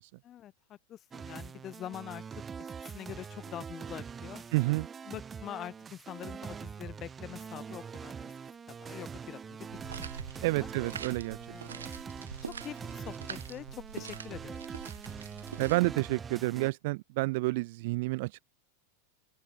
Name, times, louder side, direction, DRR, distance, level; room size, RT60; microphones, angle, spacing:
voice 1, 0.2-4.4 5.0-8.3 8.7-10.7 11.5-14.7, left 11 dB, 30° left, 5.7 m, -45 dB
sound 1, 1.1-16.7, right 6 dB, 20° right, 1.7 m, -43 dB
voice 2, 4.5-4.9 10.4-11.4 11.7-11.8 15.6-18.4, right 22 dB, 50° right, 0.3 m, -29 dB
sound 2, 9.7-15.8, right 7 dB, 70° right, 2.4 m, -44 dB
open air
figure-of-eight pair, 90°, 0 cm